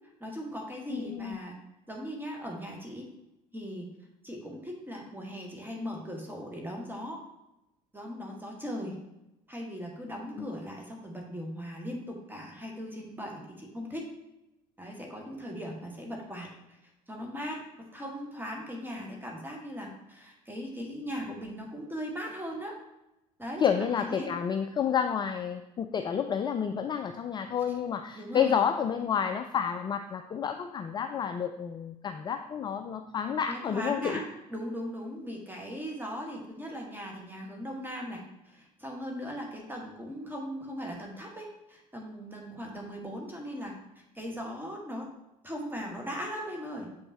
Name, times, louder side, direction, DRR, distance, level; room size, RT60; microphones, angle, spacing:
voice 1, 0.2-1.5 1.9-3.1 3.5-3.9 4.2-7.2 7.9-9.0 9.5-14.1 14.8-16.5 17.1-22.7 23.4-24.3 28.1-28.6 33.5-43.7 44.2-45.1 45.4-46.9, equal, 10° right, 0 dB, 1.7 m, -39 dB
voice 2, 0.9-1.4 10.4-10.5 23.6-34.2, left 7 dB, 20° left, 7 dB, 0.4 m, -30 dB
7.3 x 5.2 x 2.9 m, 0.92 s
figure-of-eight pair, 60°, 21 cm